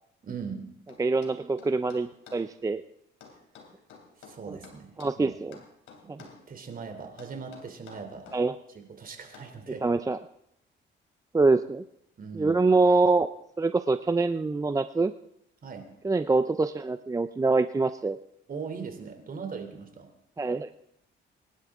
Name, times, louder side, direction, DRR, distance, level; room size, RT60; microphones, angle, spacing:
voice 1, 0.2-0.6 4.2-5.4 6.0-8.3 8.7-9.8 12.2-12.6 15.6-15.9 18.5-20.1, right 5 dB, 45° right, 5 dB, 3.0 m, -40 dB
sound 1, 0.9-2.5 3.2-5.2 5.5-6.4 7.2-8.4 9.3-9.6, left 5 dB, 85° left, 3.0 m, -51 dB
voice 2, 1.0-2.8 4.5-4.6 5.0-5.6 6.1-6.2 8.3-8.6 9.8-10.2 11.3-11.8 12.3-13.3 13.6-15.1 16.0-18.2 20.4-20.7, right 3 dB, 15° right, 11 dB, 0.5 m, -25 dB
23.5 x 11.5 x 3.6 m, 0.75 s
cardioid pair, 90°, 20 cm